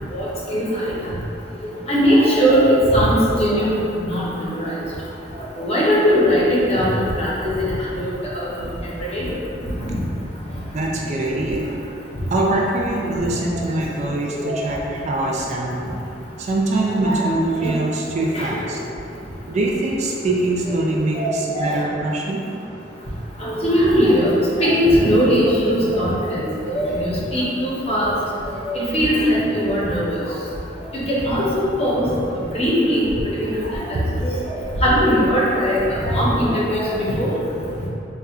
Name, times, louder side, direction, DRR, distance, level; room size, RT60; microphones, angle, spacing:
voice 1, 0.1-1.1 1.9-3.7 4.0-4.7 5.4-8.7 9.1-9.3 9.8-9.9 14.3-14.6 17.0-17.8 18.3-18.6 20.7-20.8 21.1-21.3 21.5-21.9 23.4-26.4 26.7-28.1 28.6-30.2 31.1-32.1 32.5-33.1 33.4-34.5 34.8-37.3, equal, 35° left, -7 dB, 0.7 m, -20 dB
voice 2, 10.7-11.6 12.3-15.8 16.4-18.8 19.5-22.4 33.9-34.1 34.7-34.8, right 2 dB, 40° right, -2 dB, 0.3 m, -23 dB
4.2 x 2.3 x 2.4 m, 2.8 s
head